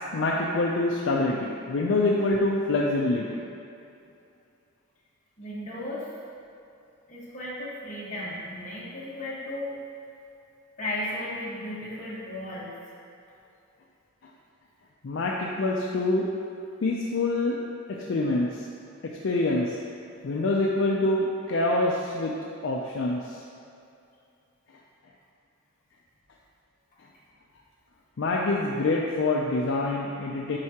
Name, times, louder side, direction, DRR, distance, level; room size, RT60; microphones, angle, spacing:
voice 1, 0.1-3.4 15.0-16.3 16.8-17.6 17.9-18.6 19.2-19.8 20.2-22.3 22.6-23.4 28.2-30.6, left 2 dB, 60° left, -2 dB, 0.4 m, -25 dB
voice 2, 5.4-6.1 7.1-9.7 10.8-12.7, left 1 dB, 35° left, -8 dB, 1.4 m, -35 dB
7.6 x 4.7 x 2.9 m, 2.6 s
head